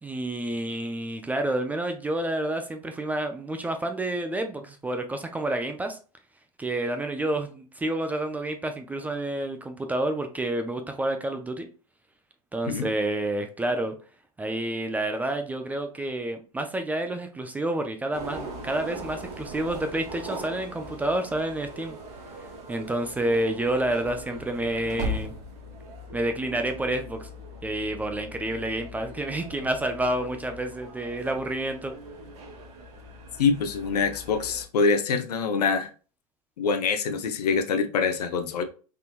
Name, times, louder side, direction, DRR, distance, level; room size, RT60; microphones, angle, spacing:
voice 1, 0.0-6.0 6.6-11.7 12.5-14.0 14.4-22.0 22.7-25.3 26.1-27.3 27.6-31.9, right 1 dB, 10° right, 0.3 m, -29 dB
sound 1, 18.1-34.6, equal, 35° right, 1.1 m, -40 dB
voice 2, 33.4-35.9 36.6-38.6, left 5 dB, 80° left, 0.7 m, -25 dB
3.7 x 2.8 x 2.4 m
hypercardioid pair, 120°, 20 cm